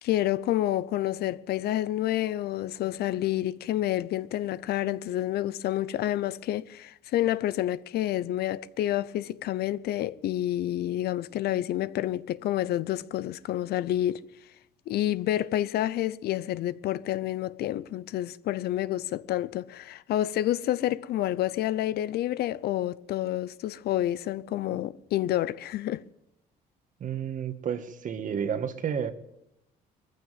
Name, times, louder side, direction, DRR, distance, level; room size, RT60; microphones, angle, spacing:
voice 1, 0.0-14.2 14.9-26.0, left 13 dB, 70° left, 0.8 m, -29 dB
voice 2, 27.0-29.1, right 8 dB, 50° right, 1.9 m, -31 dB
20.0 x 15.0 x 9.2 m
cardioid pair, 110°, 17 cm